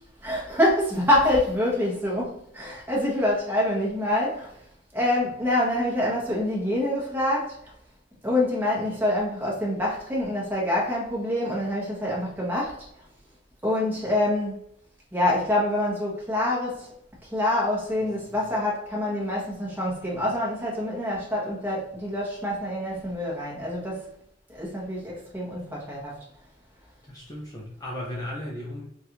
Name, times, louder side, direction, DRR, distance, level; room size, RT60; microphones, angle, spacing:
voice 1, 0.2-4.5 4.9-7.7 8.2-12.8 13.6-14.6 15.1-16.9 17.2-24.1 24.5-26.2, left 1 dB, 10° right, -4 dB, 1.3 m, -26 dB
voice 2, 27.1-28.8, left 1 dB, 20° left, -5 dB, 0.8 m, -36 dB
5.1 x 2.6 x 3.0 m, 0.74 s
head